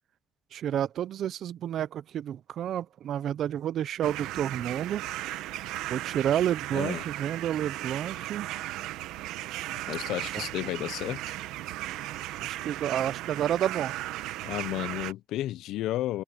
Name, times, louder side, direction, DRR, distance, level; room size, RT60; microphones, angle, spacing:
voice 1, 0.5-5.0 5.9-8.5 10.3-10.4 12.4-13.9, right 10 dB, 65° right, 0.6 m, -30 dB
sound 1, 4.0-15.1, right 15 dB, 85° right, 0.9 m, -36 dB
voice 2, 6.7-7.0 9.9-11.3 14.5-16.2, left 14 dB, 75° left, 0.6 m, -32 dB
cardioid pair, 85°, 0 cm